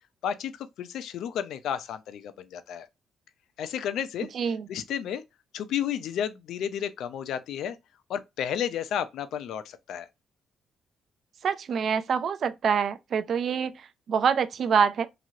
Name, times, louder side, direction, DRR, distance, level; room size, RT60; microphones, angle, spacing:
voice 1, 0.2-2.9 3.6-4.3 4.7-5.2 5.5-7.8 8.1-10.1, left 9 dB, 80° left, 0.4 m, -32 dB
voice 2, 4.3-4.7 11.4-15.1, right 6 dB, 60° right, 0.4 m, -26 dB
3.0 x 2.8 x 2.5 m
cardioid pair, 90°, 0 cm